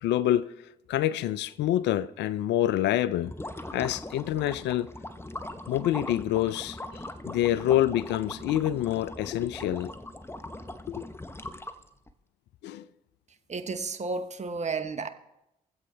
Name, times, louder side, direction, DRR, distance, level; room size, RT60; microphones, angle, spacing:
voice 1, 0.0-0.5 0.9-3.3 3.7-4.9 5.7-9.9 10.9-11.1 12.6-12.8, left 12 dB, 70° left, 0.4 m, -27 dB
sound 1, 3.2-12.1, left 1 dB, 15° left, 0.9 m, -40 dB
voice 2, 13.5-15.1, right 4 dB, 35° right, 1.1 m, -32 dB
23.5 x 7.9 x 3.3 m
hypercardioid pair, 40°, 19 cm